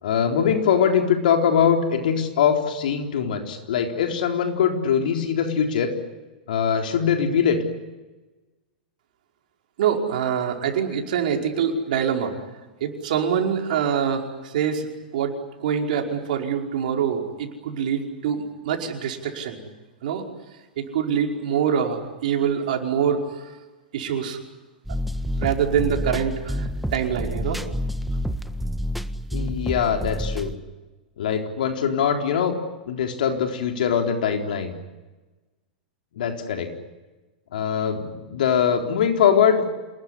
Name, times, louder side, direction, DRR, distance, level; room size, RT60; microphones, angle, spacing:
voice 1, 0.0-5.9 6.5-7.6 29.3-30.5 31.2-32.5 32.9-34.7 36.2-36.7 37.5-39.7, left 7 dB, 70° left, 4 dB, 4.1 m, -22 dB
voice 2, 9.8-12.3 12.8-14.9 15.1-15.3 15.6-19.6 20.0-20.2 20.8-23.2 23.9-24.4 25.4-27.6, right 8 dB, 65° right, 2 dB, 5.1 m, -25 dB
sound 1, 24.8-30.5, equal, ahead, 1.5 m, -28 dB
28.0 x 20.5 x 10.0 m, 1.2 s
hypercardioid pair, 105°, 5 cm